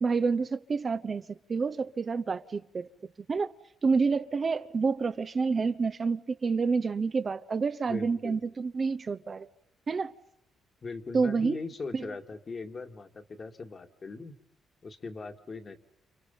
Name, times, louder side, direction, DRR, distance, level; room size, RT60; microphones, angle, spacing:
voice 1, 0.0-2.9 3.3-3.5 3.8-9.5 9.9-10.1 11.1-11.6 11.9-12.1, right 4 dB, 40° right, 0.9 m, -28 dB
voice 2, 7.9-8.4 10.8-14.3 14.8-15.8, left 3 dB, 40° left, 2.2 m, -40 dB
29.5 x 29.0 x 5.5 m
cardioid pair, 90°, 0 cm